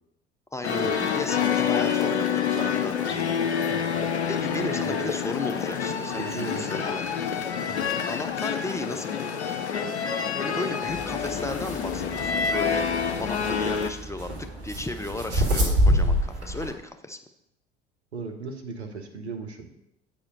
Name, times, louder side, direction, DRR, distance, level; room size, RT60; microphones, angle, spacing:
voice 1, 0.5-3.3 4.3-7.2 8.1-9.6 10.4-17.2, left 2 dB, 10° left, 6 dB, 0.5 m, -35 dB
sound 1, 0.6-13.9, left 7 dB, 80° left, 0.6 m, -27 dB
voice 2, 3.7-4.1 4.5-5.0 6.2-6.7 7.7-8.0 18.1-19.7, right 4 dB, 80° right, 4 dB, 1.0 m, -37 dB
sound 2, 10.9-16.7, equal, 50° right, 2.3 m, -27 dB
8.4 x 5.0 x 5.3 m, 0.83 s
figure-of-eight pair, 65°, 33 cm